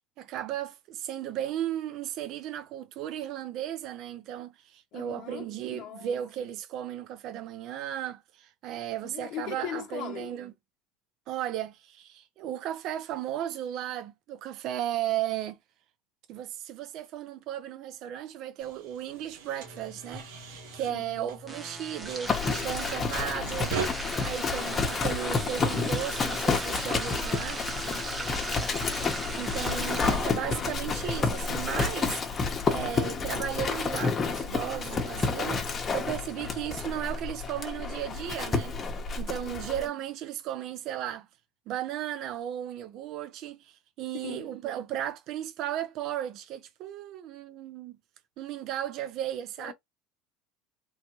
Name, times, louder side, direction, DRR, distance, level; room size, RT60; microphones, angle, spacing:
voice 1, 0.2-10.5 11.3-15.6 16.3-22.3 22.6-27.6 29.4-38.7 39.2-41.3 41.7-48.0 48.4-49.7, right 11 dB, 55° right, 0.6 m, -35 dB
voice 2, 4.9-5.5 5.7-6.1 9.0-10.3 20.9-21.3 28.5-28.6 29.7-30.8 36.4-36.5 39.4-39.7 44.1-44.5 49.6-49.7, left 12 dB, 55° left, 0.7 m, -41 dB
sound 1, 18.6-21.7 22.0-23.9, right 5 dB, 85° right, 1.2 m, -39 dB
sound 2, 19.6-37.6, right 2 dB, 20° right, 0.9 m, -40 dB
Livestock farm animals working animals, 22.3-39.9, left 4 dB, 25° left, 0.9 m, -30 dB
3.2 x 2.2 x 3.0 m
supercardioid pair, 120°, 0 cm